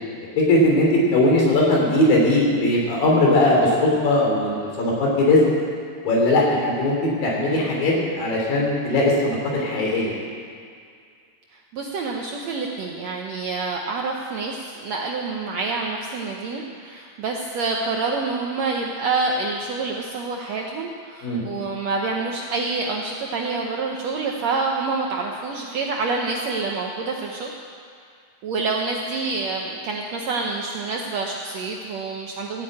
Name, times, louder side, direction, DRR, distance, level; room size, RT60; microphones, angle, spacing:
voice 1, 0.4-3.7 4.0-5.4 6.0-10.1 21.2-21.4, left 1 dB, 70° left, -2 dB, 4.8 m, -19 dB
voice 2, 11.5-27.5 28.4-32.6, right 3 dB, 75° right, 0 dB, 1.6 m, -27 dB
15.0 x 8.8 x 8.7 m, 2.3 s
omnidirectional pair, 4.2 m